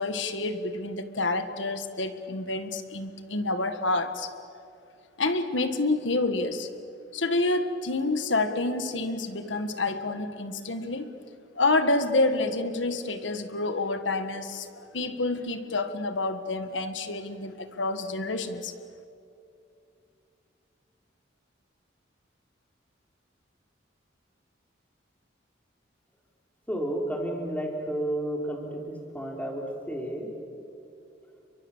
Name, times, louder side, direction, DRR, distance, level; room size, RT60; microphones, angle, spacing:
voice 1, 0.0-4.3 5.2-6.7 7.1-11.1 11.6-18.7, left 2 dB, 75° left, 9 dB, 1.7 m, -28 dB
voice 2, 26.7-30.3, right 1 dB, 10° left, 0 dB, 3.9 m, -31 dB
30.0 x 23.0 x 7.4 m, 2.6 s
head